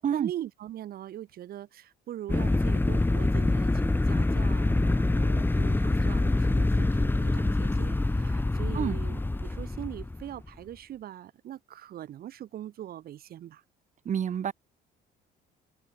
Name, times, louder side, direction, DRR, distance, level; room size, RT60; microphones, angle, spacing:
voice 1, 0.0-13.6, right 12 dB, 65° right, 6.6 m, -41 dB
sound 1, 2.3-10.5, left 2 dB, 10° left, 4.6 m, -25 dB
voice 2, 14.1-14.5, right 8 dB, 45° right, 5.1 m, -28 dB
cardioid pair, 110°, 17 cm